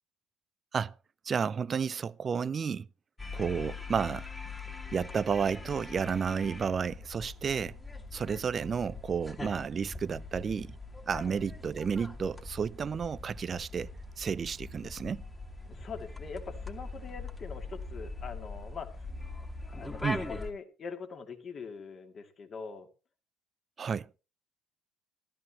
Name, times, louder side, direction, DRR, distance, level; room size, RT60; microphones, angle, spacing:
voice 1, 1.2-2.9 3.3-4.3 4.9-7.8 8.1-10.8 11.1-15.2 20.0-20.3 23.8-24.1, right 6 dB, 40° right, 0.5 m, -32 dB
sound 1, 3.2-20.5, left 3 dB, 20° left, 2.1 m, -42 dB
voice 2, 15.7-19.1 19.7-22.9, left 5 dB, 45° left, 2.4 m, -43 dB
15.0 x 13.0 x 3.0 m
hypercardioid pair, 65°, 0 cm